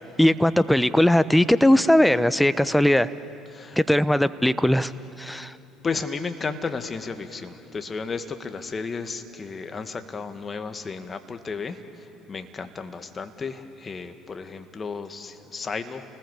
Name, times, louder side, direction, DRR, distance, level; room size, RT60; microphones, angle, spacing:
voice 1, 0.2-3.1 3.8-4.9 5.2-5.6, left 1 dB, 5° left, 14 dB, 0.9 m, -19 dB
voice 2, 5.8-11.8 12.3-16.0, left 4 dB, 30° left, 8 dB, 2.0 m, -33 dB
30.0 x 20.0 x 8.4 m, 2.9 s
hypercardioid pair, 65°, 0 cm